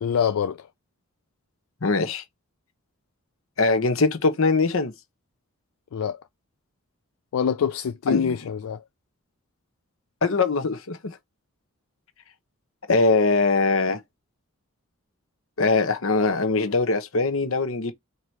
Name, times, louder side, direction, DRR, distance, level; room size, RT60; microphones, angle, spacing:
voice 1, 0.0-0.7 5.9-6.2 7.3-8.8, left 7 dB, 90° left, 0.4 m, -25 dB
voice 2, 1.8-2.2 3.6-4.9 8.1-8.3 10.2-11.2 12.9-14.0 15.6-17.9, left 3 dB, 70° left, 0.9 m, -22 dB
4.8 x 2.9 x 2.9 m
head